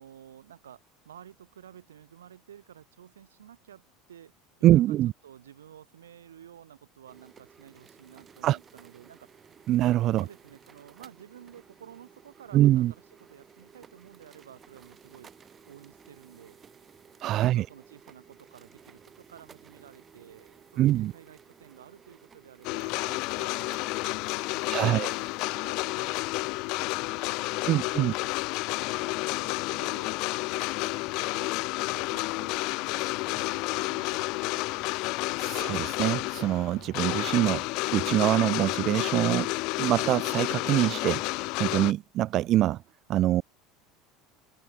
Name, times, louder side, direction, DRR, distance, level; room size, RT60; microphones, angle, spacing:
voice 1, 0.0-4.3 4.6-5.0 5.2-9.3 10.1-15.3 15.6-16.6 17.3-24.0 24.3-28.3 28.9-31.5 31.8-34.9, right 10 dB, 80° right, 4.6 m, -52 dB
voice 2, 4.6-5.1 8.4-8.6 9.7-10.2 12.5-12.9 17.2-17.7 20.8-21.1 24.7-25.1 27.6-28.1 35.4-37.6 37.9-39.5 39.8-42.8 43.1-43.4, right 14 dB, 50° right, 0.6 m, -24 dB
sound 1, 7.1-25.7, right 7 dB, 30° right, 3.4 m, -55 dB
sound 2, 22.6-41.9, left 25 dB, 60° left, 0.6 m, -30 dB
open air
figure-of-eight pair, 70°, 0 cm